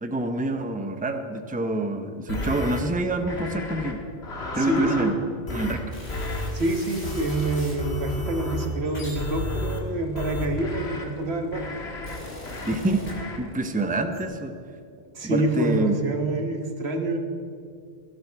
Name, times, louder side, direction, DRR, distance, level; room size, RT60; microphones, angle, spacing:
voice 1, 0.0-4.0 4.5-5.1 5.5-5.8 12.6-13.1 13.4-14.5 15.2-16.0, right 2 dB, 10° right, 7 dB, 0.7 m, -26 dB
sound 1, 2.3-2.8 3.3-3.9 4.2-5.1 5.5-5.8 6.1-6.5 7.0-8.7 9.1-9.8 10.1-11.0 11.5-12.2 12.5-12.7 13.1-13.4, left 1 dB, 85° left, 1.9 m, -32 dB
voice 2, 4.6-5.1 6.5-11.8 15.1-17.2, right 2 dB, 80° right, 4 dB, 1.6 m, -27 dB
sound 2, 5.9-7.8 8.5-10.9 11.6-13.6 13.9-14.2, left 1 dB, 60° left, 2.8 m, -41 dB
17.5 x 12.0 x 4.6 m, 2.4 s
omnidirectional pair, 1.1 m